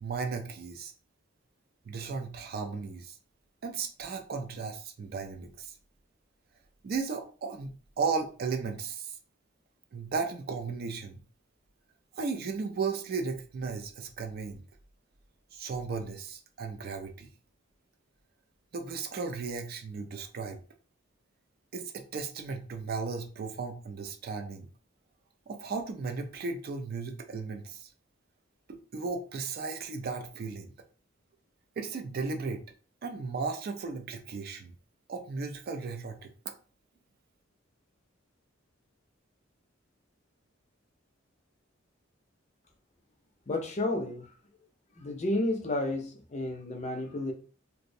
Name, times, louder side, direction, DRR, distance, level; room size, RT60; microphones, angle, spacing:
voice 1, 0.0-0.9 1.9-3.2 3.6-5.7 6.8-7.7 8.0-9.2 9.9-11.1 12.1-14.6 15.5-17.3 18.7-20.6 21.7-24.7 25.5-27.9 28.7-30.7 31.8-32.6 33.0-34.7 35.1-36.5, right 4 dB, 50° right, 0.3 m, -35 dB
voice 2, 43.5-44.3 45.0-47.3, left 1 dB, 35° left, 0.4 m, -31 dB
2.5 x 2.0 x 2.6 m
head